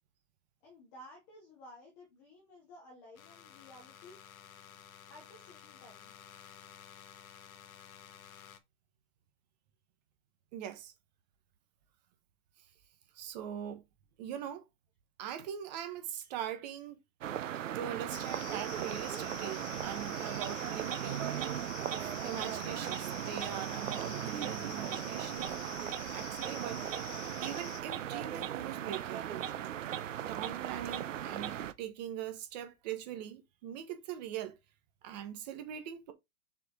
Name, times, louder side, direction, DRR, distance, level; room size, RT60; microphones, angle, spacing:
voice 1, 0.6-4.2 5.1-6.1, left 1 dB, 10° left, 0.6 m, -55 dB
sound 1, 3.2-8.6, left 8 dB, 65° left, 1.3 m, -54 dB
voice 2, 10.5-10.9 13.1-13.8 14.2-14.6 15.2-17.0 17.7-21.3 22.0-25.5 26.1-26.8 27.4-29.3 30.2-34.5 35.0-36.1, right 10 dB, 30° right, 1.2 m, -41 dB
sound 2, 17.2-31.7, right 10 dB, 55° right, 0.8 m, -38 dB
sound 3, 18.1-27.8, left 6 dB, 25° left, 2.2 m, -47 dB
7.2 x 4.7 x 3.7 m
hypercardioid pair, 160°, 45 cm